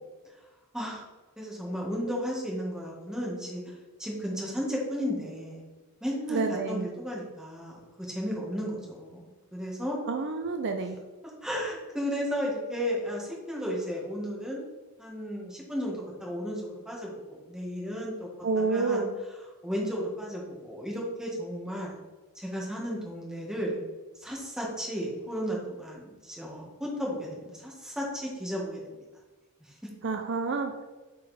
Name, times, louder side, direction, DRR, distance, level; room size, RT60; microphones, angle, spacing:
voice 1, 1.4-3.6 4.0-5.6 6.0-6.4 6.7-10.0 11.4-14.6 15.0-18.3 18.6-19.1 19.6-21.9 22.4-23.8 24.2-29.0 29.8-29.9, equal, 5° right, -3 dB, 1.6 m, -34 dB
voice 2, 6.3-6.8 10.1-11.0 18.4-19.1 30.0-30.8, right 4 dB, 55° right, 5 dB, 0.5 m, -29 dB
7.5 x 3.9 x 4.2 m, 1.2 s
head